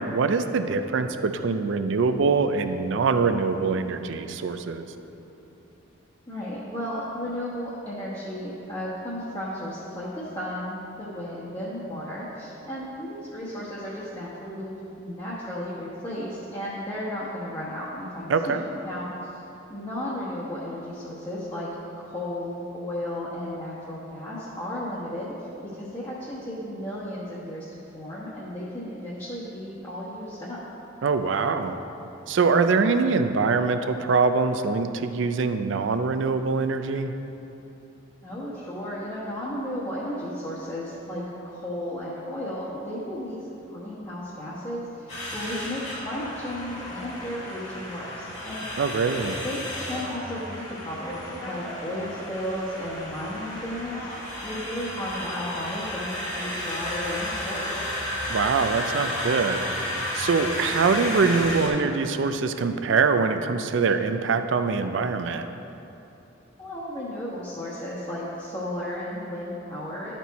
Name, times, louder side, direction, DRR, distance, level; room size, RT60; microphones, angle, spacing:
voice 1, 0.0-4.8 18.3-18.6 31.0-31.7 32.3-37.1 48.8-49.4 58.3-59.6 60.2-65.5, right 4 dB, 65° right, 9 dB, 0.4 m, -23 dB
voice 2, 6.3-14.7 15.0-19.1 19.7-21.7 22.0-25.3 25.6-30.6 38.2-48.6 49.4-54.0 54.4-57.7 60.3-60.7 66.6-70.2, left 1 dB, 20° left, -9 dB, 1.1 m, -34 dB
sound 1, 45.1-61.7, left 1 dB, 35° left, 1.5 m, -33 dB
12.0 x 4.4 x 4.1 m, 2.9 s
head